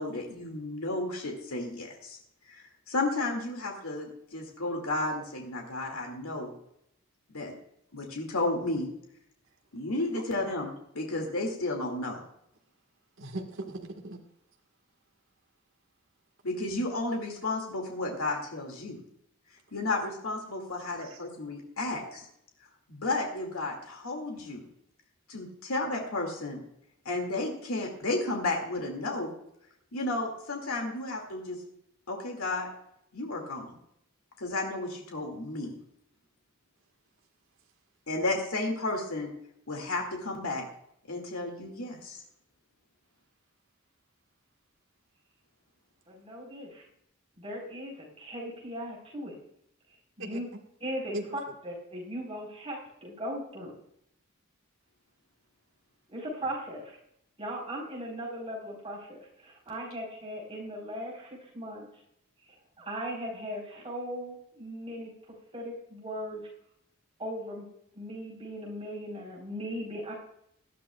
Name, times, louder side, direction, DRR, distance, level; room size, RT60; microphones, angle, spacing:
voice 1, 0.0-2.2 2.5-6.5 7.3-7.5 7.9-8.9 9.7-12.2 16.4-19.0 19.7-22.3 22.9-24.6 25.3-26.6 27.0-29.3 29.9-31.6 32.1-32.7 33.1-33.8 34.4-35.7 38.1-39.3 39.7-40.6 41.1-42.2, left 2 dB, 85° left, 1 dB, 2.3 m, -32 dB
voice 2, 13.2-14.2 20.9-21.2 50.2-50.4 51.1-51.4, right 2 dB, 65° right, 2 dB, 1.6 m, -39 dB
voice 3, 46.1-46.8 47.4-49.3 50.2-50.5 50.8-53.8 56.1-57.0 57.4-61.9 62.8-65.1 65.5-66.4 67.2-67.7 67.9-70.1, equal, 25° right, -3 dB, 4.2 m, -38 dB
18.5 x 12.5 x 2.4 m, 0.76 s
head